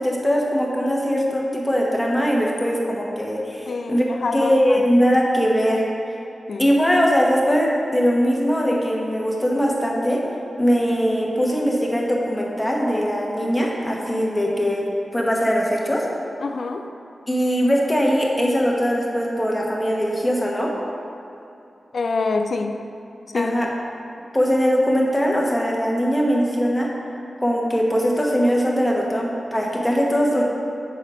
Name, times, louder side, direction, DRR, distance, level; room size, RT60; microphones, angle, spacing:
voice 1, 0.0-4.0 4.3-5.8 6.6-10.2 10.6-14.9 15.1-16.0 17.3-20.7 23.3-23.7 24.3-26.9 27.4-30.4, equal, 15° left, -2 dB, 1.2 m, -21 dB
voice 2, 3.7-4.8 6.5-6.6 16.4-16.8 21.9-22.8 23.3-23.5, left 3 dB, 70° left, 6 dB, 0.4 m, -26 dB
6.5 x 4.2 x 4.9 m, 2.7 s
cardioid pair, 60°, 0 cm